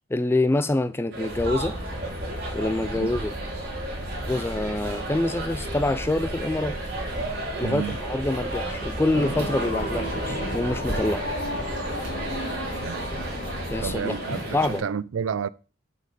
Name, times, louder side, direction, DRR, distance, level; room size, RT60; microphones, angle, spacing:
voice 1, 0.1-1.7 2.5-3.3 4.3-6.8 7.6-11.3 13.7-14.2 14.5-14.8, left 2 dB, 10° left, 0.3 m, -26 dB
sound 1, 1.1-14.8, right 2 dB, 50° right, 3.1 m, -34 dB
sound 2, 1.3-13.9, equal, 30° right, 1.7 m, -36 dB
voice 2, 7.6-8.0 12.8-13.3 13.8-14.4 14.8-15.5, right 6 dB, 85° right, 0.4 m, -30 dB
sound 3, 9.1-14.8, left 1 dB, 70° left, 2.4 m, -34 dB
7.6 x 5.3 x 5.2 m
head